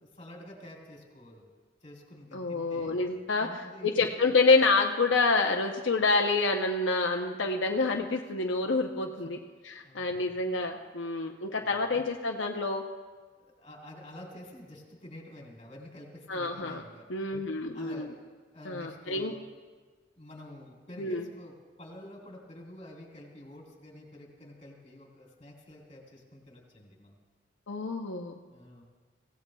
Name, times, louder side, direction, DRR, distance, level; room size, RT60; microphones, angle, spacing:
voice 1, 0.0-1.5 1.8-2.9 3.4-4.0 9.1-9.3 9.8-10.3 11.6-11.9 13.4-17.1 17.7-18.1 18.5-19.5 20.2-27.1 28.5-28.8, left 1 dB, 35° left, -2 dB, 3.6 m, -48 dB
voice 2, 2.3-3.5 3.8-9.4 9.7-12.8 16.3-16.8 17.1-18.1 18.7-19.3 21.0-21.2 27.7-28.3, left 3 dB, 85° left, 2 dB, 0.7 m, -27 dB
25.0 x 16.5 x 2.3 m, 1.5 s
head